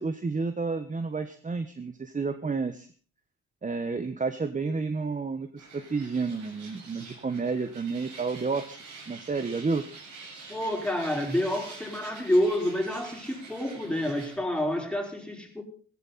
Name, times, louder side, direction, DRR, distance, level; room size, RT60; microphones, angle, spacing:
voice 1, 0.0-2.9 3.6-9.8 10.2-10.3, right 4 dB, 25° right, 9 dB, 1.3 m, -31 dB
sound 1, 5.6-14.4, right 4 dB, 75° right, 7.5 m, -46 dB
voice 2, 10.5-15.6, left 1 dB, 5° left, 1 dB, 5.2 m, -28 dB
16.5 x 16.0 x 4.3 m, 0.41 s
cardioid pair, 90°, 30 cm